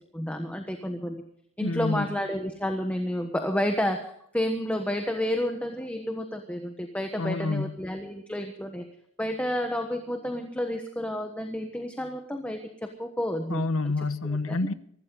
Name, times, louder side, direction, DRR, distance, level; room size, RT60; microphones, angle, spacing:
voice 1, 0.1-1.2 1.6-8.8 9.2-13.6 14.5-14.6, equal, 5° left, 1.2 m, -30 dB
voice 2, 1.6-2.1 7.2-7.7 13.5-14.7, left 3 dB, 90° left, 0.9 m, -28 dB
24.0 x 13.0 x 3.9 m
head